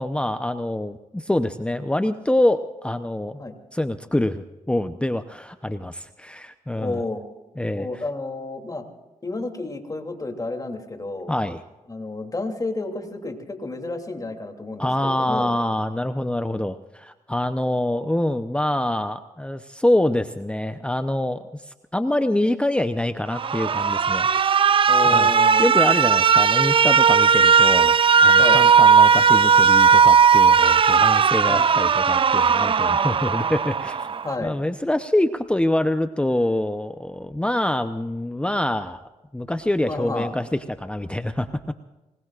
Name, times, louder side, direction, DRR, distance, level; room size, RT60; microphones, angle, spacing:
voice 1, 0.0-3.4 3.7-7.0 7.6-8.0 11.3-11.6 14.8-24.3 24.6-24.7 25.0-34.1 34.4-39.0 39.3-41.7, left 1 dB, 10° left, 8 dB, 0.8 m, -25 dB
voice 2, 6.8-7.2 7.7-8.8 9.2-11.3 11.9-15.5 24.9-25.7 28.4-28.6 31.5-31.6 34.2-34.6 39.8-40.3, left 2 dB, 30° left, 4 dB, 3.0 m, -31 dB
Alarm, 23.3-34.3, right 6 dB, 45° right, 0.5 m, -17 dB
26.5 x 21.0 x 2.5 m, 1.1 s
cardioid pair, 75°, 13 cm